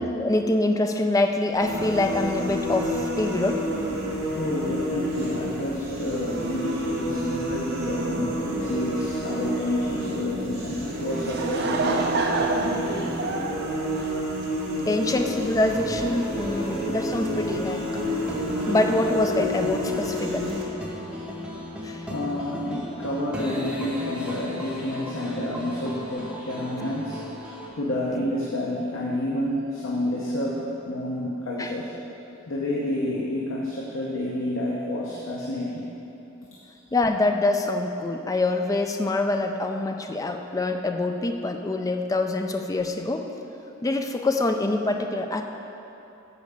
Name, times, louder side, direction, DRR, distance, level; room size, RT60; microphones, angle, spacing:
voice 1, 0.0-3.6 14.8-17.9 18.6-20.6 21.8-22.0 31.6-31.7 36.9-43.3 43.8-45.4, left 2 dB, 15° left, 5 dB, 0.4 m, -25 dB
sound 1, 1.6-20.6, equal, 85° right, 1.7 m, -30 dB
voice 2, 4.4-13.1 16.5-16.7 18.4-18.5 20.3-20.6 22.1-27.2 27.7-31.9 32.5-35.9, left 1 dB, 75° left, -4 dB, 0.9 m, -29 dB
Laughter / Crowd, 11.0-14.7, right 3 dB, 55° right, 0.7 m, -28 dB
sound 2, 15.6-27.7, equal, 5° right, 0.9 m, -36 dB
8.3 x 4.7 x 6.6 m, 2.9 s
head